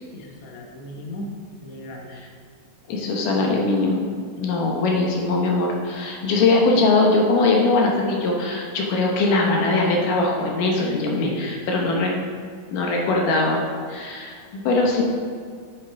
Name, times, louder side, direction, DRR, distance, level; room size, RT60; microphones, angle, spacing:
voice 1, 0.1-1.3 1.6-2.1 2.8-3.7 11.2-11.6, left 1 dB, 65° left, 0 dB, 2.2 m, -37 dB
voice 2, 2.9-4.0 4.4-12.2 12.7-13.6 13.9-15.0, left 3 dB, 85° left, -1 dB, 2.7 m, -21 dB
9.8 x 8.7 x 3.5 m, 2.1 s
omnidirectional pair, 3.7 m